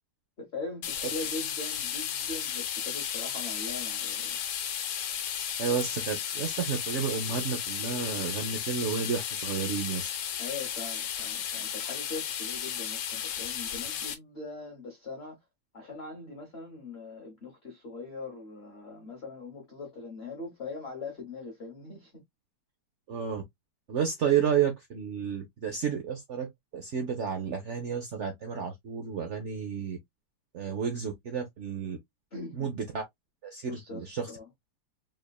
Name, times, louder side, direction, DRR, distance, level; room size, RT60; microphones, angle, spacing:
voice 1, 0.4-4.4 10.4-15.4 15.7-22.2 32.3-32.7 33.7-34.5, left 3 dB, 40° left, 1.1 m, -41 dB
sound 1, 0.8-14.1, left 9 dB, 75° left, 1.5 m, -34 dB
voice 2, 5.6-10.1 23.1-23.4 23.9-26.5 26.7-30.0 30.5-32.0 32.6-33.0 33.4-34.3, right 7 dB, 70° right, 0.6 m, -31 dB
3.6 x 3.3 x 2.3 m
omnidirectional pair, 2.2 m